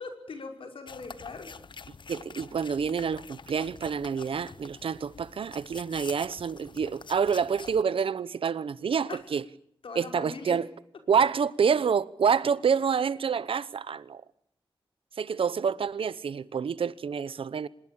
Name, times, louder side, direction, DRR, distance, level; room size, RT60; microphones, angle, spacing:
voice 1, 0.0-1.5 9.1-9.2 9.8-10.6, left 4 dB, 80° left, 5.7 m, -40 dB
sound 1, 0.9-7.8, left 5 dB, 60° left, 1.0 m, -47 dB
voice 2, 2.1-9.4 9.9-10.7 11.1-14.2 15.2-17.7, right 6 dB, 85° right, 1.0 m, -27 dB
26.0 x 21.5 x 8.8 m
wide cardioid pair, 80°, 9 cm